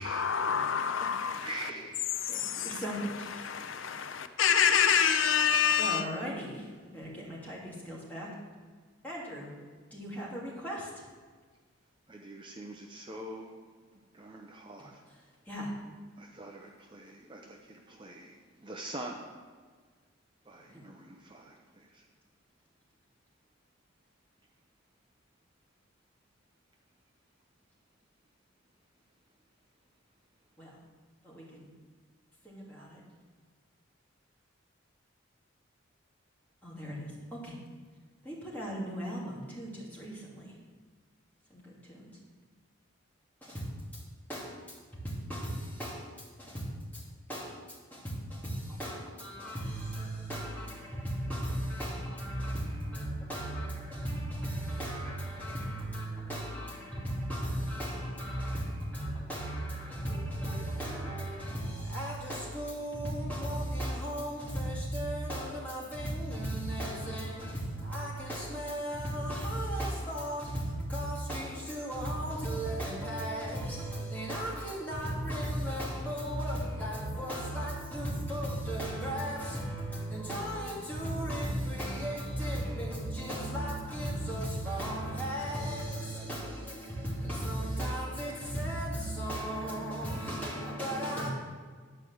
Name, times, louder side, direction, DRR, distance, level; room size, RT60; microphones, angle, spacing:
voice 1, 0.0-1.5 2.2-6.1, left 7 dB, 75° left, 0.6 m, -28 dB
voice 2, 1.4-2.2 12.1-13.5 14.1-15.0 16.2-19.4 20.5-22.1, right 1 dB, 25° right, 0.7 m, -44 dB
voice 3, 2.3-3.7 5.8-6.7 6.9-8.3 9.0-9.5 9.9-10.9 15.5-15.7 20.7-20.8 30.6-30.8 31.2-31.7 32.4-33.0 36.6-37.5 38.2-40.5 41.5-42.1 43.4-44.0 44.3-44.8 45.0-47.0 47.3-91.3, right 1 dB, 10° left, 2.5 m, -36 dB
11.0 x 4.9 x 7.8 m
head